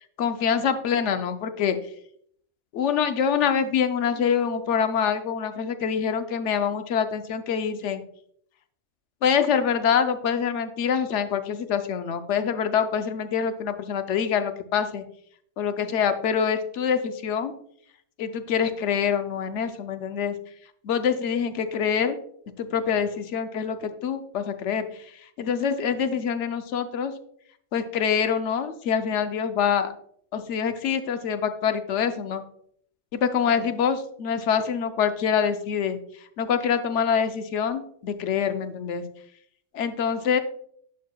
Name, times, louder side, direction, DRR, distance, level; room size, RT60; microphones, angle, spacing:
voice 1, 0.2-1.8 2.7-8.0 9.2-15.0 15.6-17.5 18.2-20.3 20.8-22.2 22.6-27.1 27.7-29.9 30.3-32.4 33.1-39.1 39.7-40.4, left 7 dB, 75° left, 9 dB, 0.9 m, -25 dB
11.0 x 4.6 x 2.2 m, 0.65 s
omnidirectional pair, 1.2 m